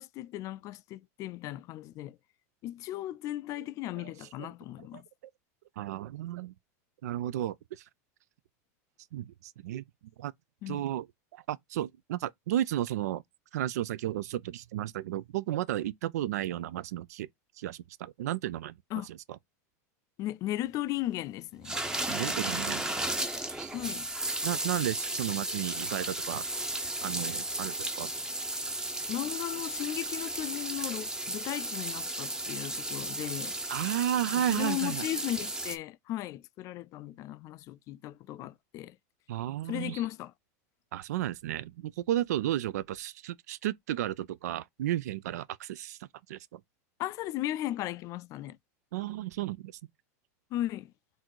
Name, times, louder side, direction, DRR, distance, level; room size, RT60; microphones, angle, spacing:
voice 1, 0.0-2.2 2.6-5.1 10.6-10.8 18.9-19.1 20.2-21.8 23.7-24.1 29.1-33.5 34.4-39.0 39.7-40.3 47.0-48.6 50.5-50.9, left 14 dB, 40° left, 0.3 m, -36 dB
voice 2, 5.8-6.5 7.0-7.8 9.1-9.8 10.2-10.3 10.7-11.1 11.3-13.2 13.5-17.3 17.6-18.8 22.1-22.9 23.5-23.7 24.4-26.4 27.0-28.1 33.7-35.0 39.3-40.0 40.9-46.6 48.9-49.7, right 13 dB, 85° right, 0.4 m, -33 dB
sound 1, 21.6-35.8, right 1 dB, 10° right, 0.7 m, -34 dB
3.8 x 2.6 x 4.4 m
supercardioid pair, 130°, 9 cm